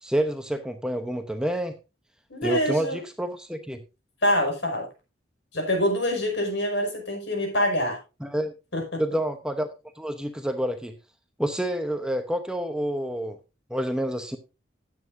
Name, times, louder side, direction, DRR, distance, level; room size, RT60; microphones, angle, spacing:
voice 1, 0.0-1.7 2.4-3.8 8.2-8.5 9.0-9.7 10.0-10.9 11.4-13.4 13.7-14.4, equal, 5° right, 7 dB, 0.8 m, -28 dB
voice 2, 2.3-3.0 4.2-4.9 5.5-8.0 8.7-9.0, equal, 65° left, 2 dB, 5.8 m, -25 dB
14.5 x 9.5 x 2.6 m, 0.29 s
head